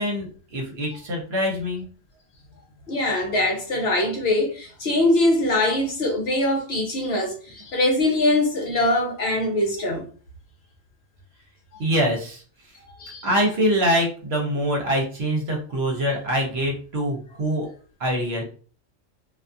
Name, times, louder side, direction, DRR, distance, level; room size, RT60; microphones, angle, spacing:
voice 1, 0.0-1.8 11.8-12.4 13.2-17.7 18.0-18.4, equal, 60° right, 0.9 m, -24 dB
voice 2, 2.9-10.1 13.0-13.3, left 1 dB, 60° left, 0.8 m, -22 dB
2.3 x 2.3 x 2.5 m
omnidirectional pair, 1.4 m